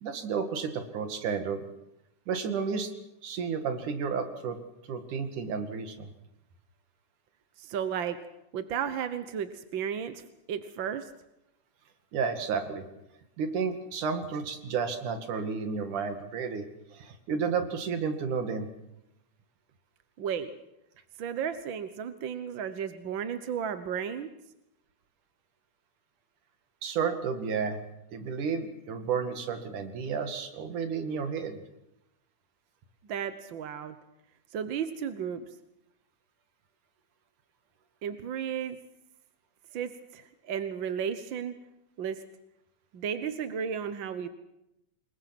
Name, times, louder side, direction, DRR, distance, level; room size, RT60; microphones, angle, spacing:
voice 1, 0.0-1.6 2.3-2.9 3.2-4.6 4.9-6.1 12.1-12.9 13.4-16.6 16.9-18.7 26.8-27.8 28.1-31.6, right 6 dB, 80° right, 7 dB, 3.7 m, -32 dB
voice 2, 7.6-8.2 8.5-11.1 20.2-20.5 21.2-24.3 33.1-33.9 34.5-35.5 38.0-38.8 39.7-41.5 42.0-42.2 42.9-44.3, right 8 dB, 60° right, 10 dB, 1.3 m, -34 dB
27.5 x 22.5 x 6.1 m, 0.86 s
omnidirectional pair, 3.5 m